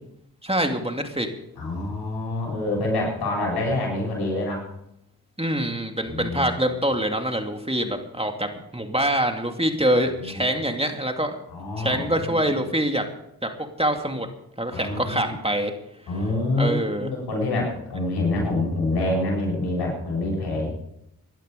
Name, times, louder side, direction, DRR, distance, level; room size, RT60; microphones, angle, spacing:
voice 1, 0.4-1.3 5.4-11.4 11.8-13.0 13.4-13.5 13.8-14.3 14.6-15.7 16.6-17.1, right 1 dB, 15° right, 4 dB, 2.5 m, -25 dB
voice 2, 1.6-4.7 6.0-6.6 10.2-10.5 11.5-12.4 14.7-15.3 16.1-20.7, left 2 dB, 90° left, -1 dB, 7.2 m, -26 dB
16.5 x 11.5 x 5.3 m, 0.78 s
cardioid pair, 45°, 39 cm